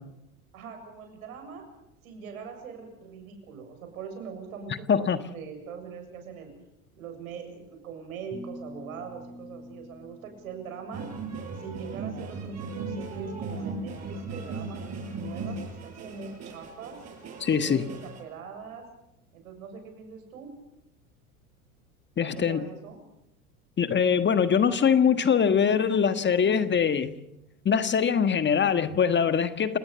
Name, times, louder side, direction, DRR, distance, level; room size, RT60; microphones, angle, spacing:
voice 1, 0.5-1.6 2.0-6.5 6.9-11.1 11.6-14.8 15.1-17.0 17.6-18.9 19.3-20.5 22.2-23.0, right 6 dB, 75° right, 5 dB, 7.3 m, -42 dB
sound 1, 8.3-11.4, left 1 dB, ahead, 4.4 m, -46 dB
sound 2, 10.9-18.2, right 3 dB, 35° right, 7.3 m, -37 dB
voice 2, 17.4-17.9 22.2-22.6 23.8-27.1 27.6-29.8, left 7 dB, 25° left, 11 dB, 1.5 m, -23 dB
29.0 x 18.5 x 7.0 m, 0.87 s
hypercardioid pair, 80°, 42 cm